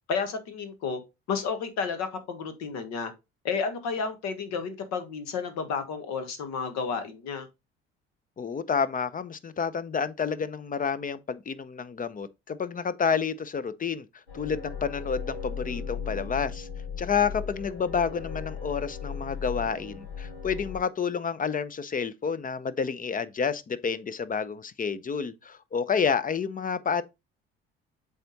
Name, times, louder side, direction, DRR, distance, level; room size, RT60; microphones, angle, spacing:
voice 1, 0.1-1.0 1.3-3.1 3.4-7.5, left 5 dB, 60° left, 1.6 m, -31 dB
voice 2, 8.4-14.1 14.3-16.7 17.0-27.0, left 6 dB, 25° left, 0.7 m, -29 dB
sound 1, 14.3-20.8, left 6 dB, 85° left, 2.2 m, -37 dB
7.7 x 3.6 x 4.1 m
figure-of-eight pair, 55°, 31 cm